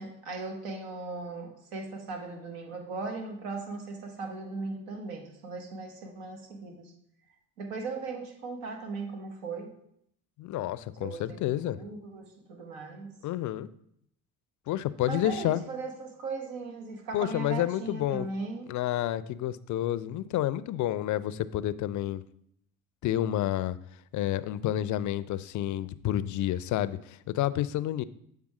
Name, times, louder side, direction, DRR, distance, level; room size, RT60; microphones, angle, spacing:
voice 1, 0.0-6.9 7.6-9.7 11.0-13.1 15.0-18.7, right 3 dB, 75° right, 3 dB, 1.6 m, -38 dB
voice 2, 10.4-11.8 13.2-13.7 14.7-15.6 17.1-18.3 18.7-22.2 23.0-23.8 24.1-28.0, left 13 dB, 45° left, 16 dB, 0.5 m, -29 dB
7.5 x 3.5 x 4.8 m, 0.72 s
hypercardioid pair, 65°, 43 cm